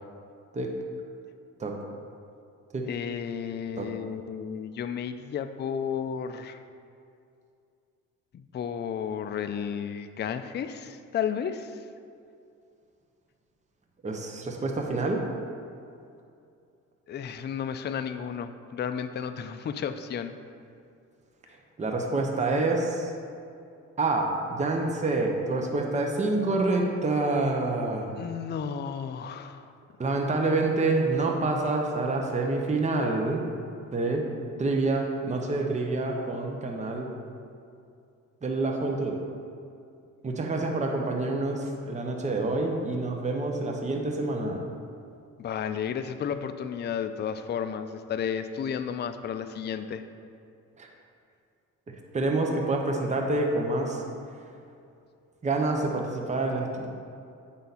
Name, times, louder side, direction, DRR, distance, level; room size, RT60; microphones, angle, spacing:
voice 1, 2.9-6.6 8.3-11.8 17.1-20.3 28.2-29.7 45.4-50.0, left 7 dB, 35° left, 9 dB, 0.4 m, -33 dB
voice 2, 14.0-15.2 21.8-23.1 24.0-28.1 30.0-33.4 33.9-34.2 34.6-37.1 38.4-39.2 40.2-44.6 50.8-50.9 51.9-54.0 55.4-56.9, right 2 dB, 25° right, 1 dB, 0.9 m, -27 dB
8.1 x 5.6 x 4.1 m, 2.5 s
cardioid pair, 90°, 30 cm